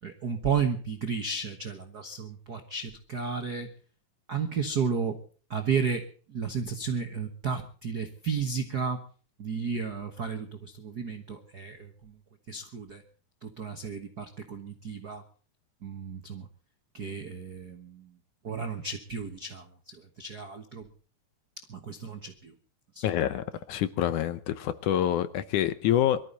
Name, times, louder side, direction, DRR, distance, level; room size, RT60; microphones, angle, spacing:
voice 1, 0.0-3.7 4.3-5.2 5.5-9.0 9.4-12.2 12.5-13.0 13.4-15.2 15.8-16.5 16.9-18.2 18.4-20.9 21.6-22.6 22.9-23.3, right 6 dB, 65° right, 0.9 m, -33 dB
voice 2, 23.0-26.2, left 11 dB, 70° left, 2.1 m, -27 dB
23.5 x 13.5 x 4.0 m
omnidirectional pair, 4.0 m